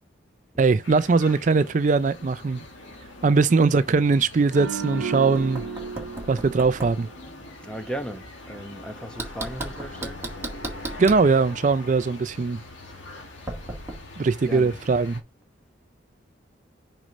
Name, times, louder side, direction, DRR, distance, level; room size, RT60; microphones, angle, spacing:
voice 1, 0.6-2.6 3.2-5.6 6.3-7.1 11.0-12.6 14.2-15.2, right 4 dB, 40° right, 0.3 m, -21 dB
sound 1, 0.8-15.2, left 2 dB, 80° left, 2.2 m, -43 dB
sound 2, 4.5-7.8 8.1-8.3, right 4 dB, 80° right, 1.0 m, -35 dB
Knock, 4.9-7.0 9.2-11.3 13.5-14.0, right 2 dB, 15° right, 1.7 m, -35 dB
voice 2, 7.6-10.3 14.4-14.8, right 1 dB, 5° left, 0.9 m, -36 dB
6.1 x 5.3 x 5.2 m
head